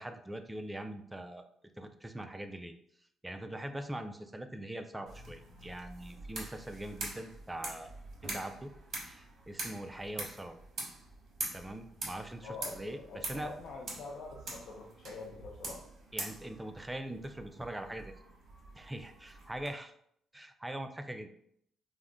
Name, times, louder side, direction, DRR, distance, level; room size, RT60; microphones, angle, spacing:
voice 1, 0.0-1.4 1.8-2.7 3.2-7.9 8.2-8.7 9.0-10.6 11.5-13.5 16.1-18.1 18.8-20.0 20.3-21.3, right 1 dB, 10° right, 7 dB, 0.3 m, -42 dB
sound 1, 5.1-19.7, right 2 dB, 55° right, 0.8 m, -44 dB
voice 2, 12.4-15.8, left 3 dB, 70° left, -3 dB, 0.5 m, -45 dB
2.4 x 2.1 x 3.5 m, 0.69 s
cardioid pair, 90°, 0 cm